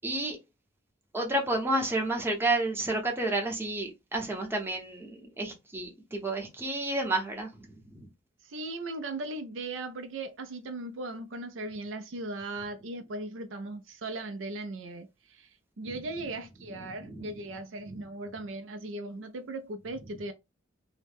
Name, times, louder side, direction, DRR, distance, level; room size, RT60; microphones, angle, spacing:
voice 1, 0.0-0.4 1.1-8.1 15.8-15.9 16.7-17.3 17.9-18.0, right 2 dB, 10° right, 0.7 m, -31 dB
voice 2, 8.4-20.3, right 2 dB, 65° right, 0.4 m, -38 dB
2.7 x 2.1 x 3.4 m
head